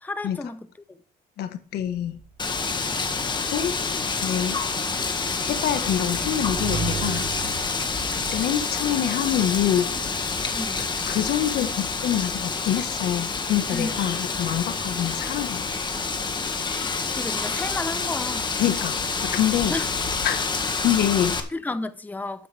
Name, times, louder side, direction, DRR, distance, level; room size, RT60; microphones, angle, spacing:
voice 1, 0.0-0.7 10.5-10.9 13.7-14.0 17.1-18.5 19.7-19.9 21.5-22.5, left 2 dB, 10° left, 0.8 m, -32 dB
voice 2, 1.4-2.2 3.5-3.7 4.2-4.6 5.4-7.2 8.3-9.9 10.8-15.7 18.6-19.7 20.2-20.4 20.8-21.3, left 11 dB, 70° left, 1.5 m, -25 dB
Motorcycle / Engine, 1.9-9.0, right 6 dB, 35° right, 1.0 m, -37 dB
Wind, 2.4-21.4, left 4 dB, 25° left, 1.9 m, -28 dB
12.0 x 9.3 x 3.5 m
cardioid pair, 110°, 17 cm